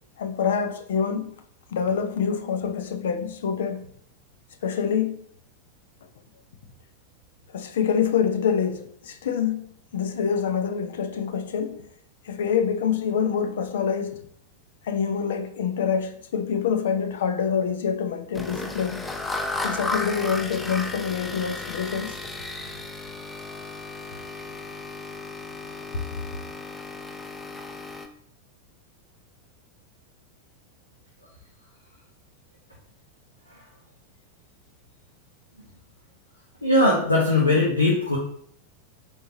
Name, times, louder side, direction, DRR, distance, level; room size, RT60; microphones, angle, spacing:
voice 1, 0.2-1.3 1.7-3.9 4.6-5.2 7.5-11.9 12.2-14.3 14.8-19.1 19.6-22.2, left 7 dB, 60° left, 0.8 m, -26 dB
sound 1, 18.3-28.1, left 2 dB, 10° left, 0.7 m, -34 dB
voice 2, 36.6-38.2, left 2 dB, 85° left, 1.4 m, -20 dB
8.4 x 4.1 x 3.0 m
figure-of-eight pair, 90°, 0 cm